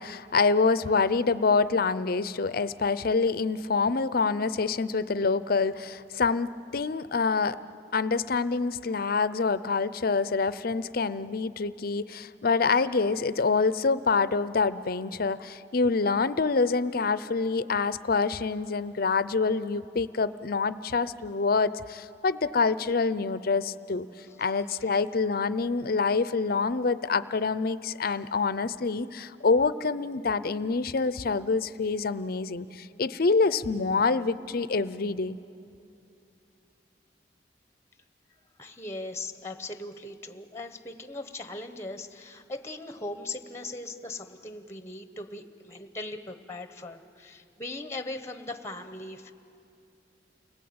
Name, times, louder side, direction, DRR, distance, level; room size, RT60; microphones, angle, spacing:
voice 1, 0.0-7.6 7.9-24.1 24.4-35.4, left 4 dB, 55° left, 15 dB, 0.6 m, -26 dB
voice 2, 38.6-49.3, left 2 dB, 15° left, 9 dB, 1.1 m, -39 dB
29.5 x 20.5 x 8.7 m, 2.7 s
head